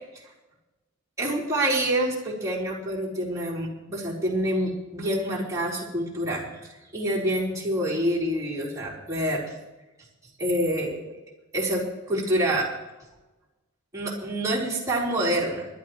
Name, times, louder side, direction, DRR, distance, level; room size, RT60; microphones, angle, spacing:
voice 1, 1.2-6.4 6.9-9.5 10.4-11.1 11.5-11.8 12.1-12.7 13.9-15.7, right 1 dB, 15° right, -6 dB, 4.0 m, -26 dB
23.5 x 11.5 x 3.2 m, 1.1 s
head